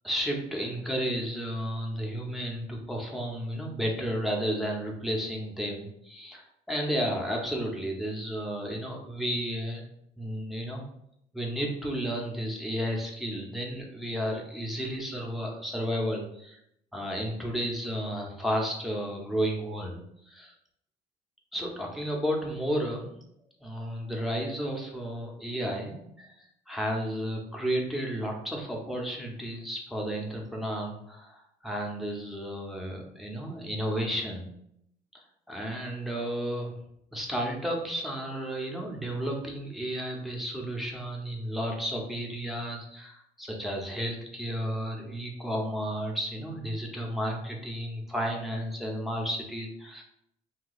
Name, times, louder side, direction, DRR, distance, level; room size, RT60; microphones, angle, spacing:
voice 1, 0.0-9.8 10.2-10.8 11.3-16.6 16.9-20.0 20.3-20.5 21.5-23.1 23.6-34.5 35.5-36.8 37.1-50.0, equal, ahead, 0 dB, 0.7 m, -32 dB
2.9 x 2.3 x 3.9 m, 0.75 s
cardioid pair, 110°, 17 cm